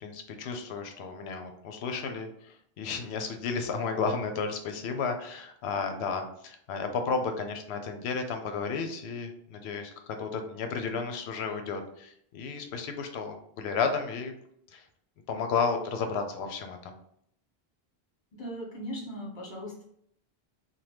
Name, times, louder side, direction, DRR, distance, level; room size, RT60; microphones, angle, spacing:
voice 1, 0.0-14.3 14.7-14.8 15.3-16.9, left 5 dB, 75° left, 6 dB, 0.8 m, -33 dB
voice 2, 18.3-19.8, equal, 50° left, -3 dB, 1.3 m, -38 dB
2.9 x 2.2 x 3.3 m, 0.68 s
omnidirectional pair, 1.1 m